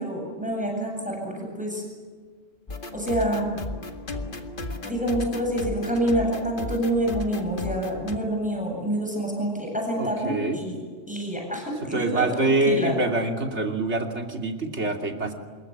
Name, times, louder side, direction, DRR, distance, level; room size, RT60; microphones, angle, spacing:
voice 1, 0.0-1.8 2.9-3.6 4.8-10.8 11.1-13.0, right 1 dB, 5° right, 0 dB, 8.0 m, -27 dB
sound 1, 2.7-8.2, left 2 dB, 50° left, 1.9 m, -35 dB
voice 2, 10.0-10.6 11.9-15.3, right 2 dB, 80° right, 3 dB, 3.1 m, -25 dB
26.5 x 22.0 x 9.5 m, 1.5 s
omnidirectional pair, 1.2 m